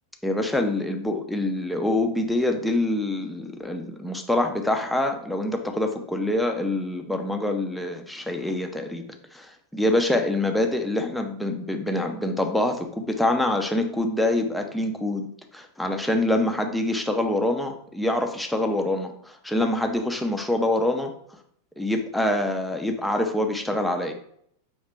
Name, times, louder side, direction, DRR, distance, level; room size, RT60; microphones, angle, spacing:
voice 1, 0.2-9.0 9.3-15.3 15.5-21.1 21.8-24.1, left 1 dB, 5° left, 4 dB, 0.6 m, -25 dB
5.4 x 2.9 x 3.3 m, 0.67 s
figure-of-eight pair, 90°, 0 cm